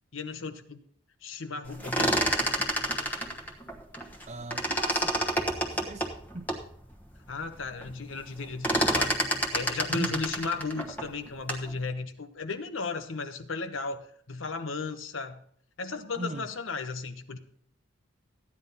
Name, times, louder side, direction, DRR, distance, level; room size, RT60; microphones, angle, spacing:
voice 1, 0.1-0.8 1.2-2.2 7.3-9.2 9.5-15.4 15.8-17.4, left 4 dB, 75° left, 1.0 m, -35 dB
sound 1, 1.7-4.2 4.5-6.6 7.2-7.3 7.5-7.9 8.2-11.7, right 1 dB, 10° left, 1.1 m, -28 dB
voice 2, 4.3-5.1 5.7-6.1 6.3-6.5 9.9-10.2 16.1-16.5, right 2 dB, 35° right, 0.6 m, -37 dB
14.5 x 9.8 x 4.1 m
head